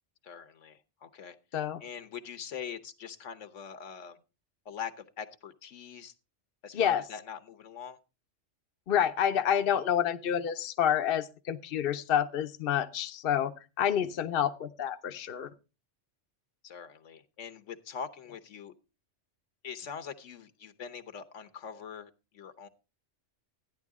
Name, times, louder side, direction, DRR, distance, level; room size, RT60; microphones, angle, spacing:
voice 1, 0.2-1.4 1.8-4.2 4.6-6.1 6.6-8.0 16.6-18.7 19.6-22.7, left 7 dB, 80° left, 8 dB, 1.3 m, -43 dB
voice 2, 8.9-13.5 13.8-15.5, left 9 dB, 55° left, 7 dB, 0.9 m, -28 dB
13.0 x 10.0 x 3.6 m, 0.31 s
omnidirectional pair, 1.3 m